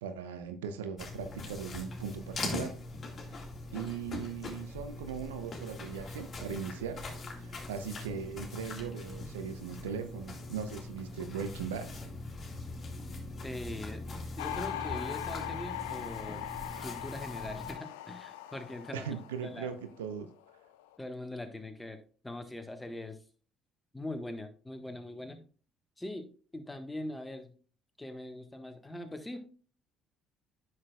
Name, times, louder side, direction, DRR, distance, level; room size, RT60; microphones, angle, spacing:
voice 1, 0.0-2.8 3.3-3.5 3.7-7.0 7.3-12.0 18.9-20.3, right 7 dB, 85° right, 0.6 m, -39 dB
sound 1, 1.0-17.7, left 2 dB, 40° left, 2.2 m, -42 dB
voice 2, 13.4-14.0 14.4-16.5 16.8-19.2 19.4-19.7 21.0-22.0 22.2-23.2 23.9-25.4 26.0-27.5 28.0-29.4, left 1 dB, 15° left, 1.4 m, -42 dB
sound 2, 14.4-20.2 20.5-20.9, left 11 dB, 80° left, 0.5 m, -40 dB
9.4 x 6.2 x 2.4 m
hypercardioid pair, 55°, 0 cm